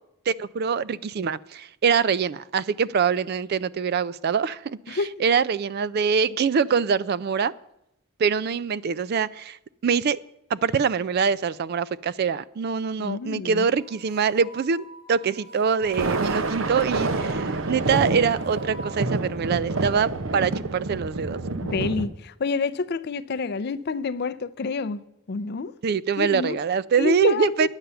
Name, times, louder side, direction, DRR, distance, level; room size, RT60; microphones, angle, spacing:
voice 1, 0.3-7.5 8.2-9.6 9.8-10.2 10.5-21.4 25.8-27.7, right 6 dB, 50° right, 0.3 m, -24 dB
voice 2, 13.0-13.7 21.6-25.7 26.2-26.6 27.0-27.7, left 4 dB, 50° left, 0.5 m, -28 dB
sound 1, 13.7-19.0, right 1 dB, 85° right, 3.0 m, -46 dB
Thunder, 15.8-22.1, right 3 dB, 70° right, 0.8 m, -28 dB
10.0 x 8.9 x 6.8 m
head